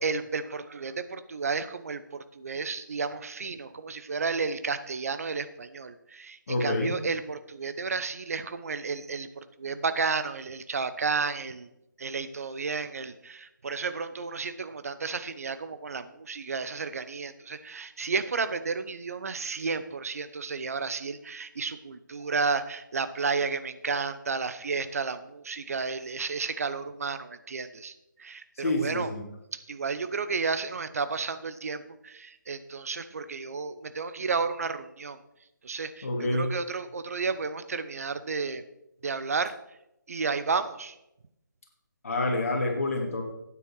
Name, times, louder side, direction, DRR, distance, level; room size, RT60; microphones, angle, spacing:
voice 1, 0.0-11.7 12.0-27.9 28.2-29.1 29.5-35.2 35.6-38.6 39.0-39.5 40.1-40.9, right 4 dB, 45° right, 12 dB, 0.9 m, -32 dB
voice 2, 6.5-7.0 28.6-29.3 30.3-30.4 33.5-33.8 36.0-36.5 42.0-43.2, left 2 dB, 45° left, 1 dB, 2.8 m, -28 dB
12.5 x 9.1 x 4.7 m, 0.86 s
figure-of-eight pair, 145°, 11 cm